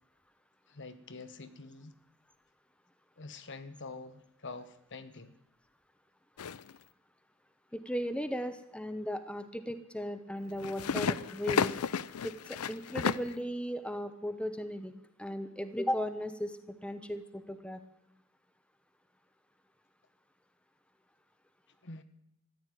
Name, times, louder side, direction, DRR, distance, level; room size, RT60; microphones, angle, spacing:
voice 1, 0.7-1.9 3.2-5.3 21.8-22.0, left 3 dB, 55° left, 1.2 m, -46 dB
sound 1, 6.4-6.8 10.5-13.3, left 6 dB, 85° left, 0.5 m, -33 dB
voice 2, 7.7-11.7 12.2-17.8, equal, 5° left, 0.9 m, -36 dB
14.5 x 10.0 x 9.1 m
head